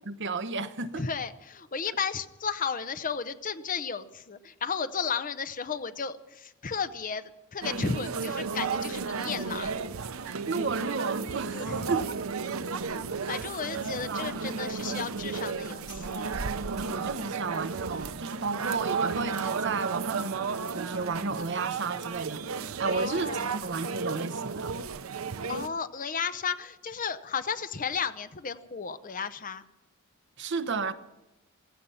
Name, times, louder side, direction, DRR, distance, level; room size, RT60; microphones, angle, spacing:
voice 1, 0.0-1.1 10.2-12.6 13.2-14.5 16.8-24.7 30.4-30.9, right 4 dB, 55° right, 1.0 m, -33 dB
voice 2, 0.9-9.7 11.5-11.9 12.9-13.0 13.3-16.2 22.9-23.4 25.5-29.6, left 6 dB, 40° left, 0.8 m, -34 dB
sound 1, 7.6-25.7, right 5 dB, 80° right, 0.7 m, -33 dB
16.5 x 15.0 x 5.7 m
head